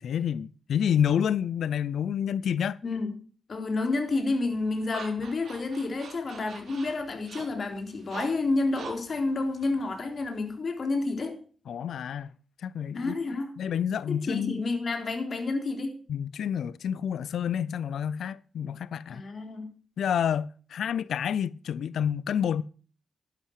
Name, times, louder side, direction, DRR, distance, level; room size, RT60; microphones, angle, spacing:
voice 1, 0.0-2.8 11.7-12.3 12.6-13.2 13.6-14.6 16.1-19.2 20.0-22.6, left 8 dB, 80° left, 0.4 m, -29 dB
voice 2, 2.8-3.1 3.5-11.4 12.9-13.5 14.1-16.0 19.1-19.7, left 3 dB, 45° left, 3.7 m, -29 dB
sound 1, 4.1-10.6, right 5 dB, 65° right, 3.8 m, -46 dB
11.5 x 11.0 x 4.7 m
cardioid pair, 110°, 0 cm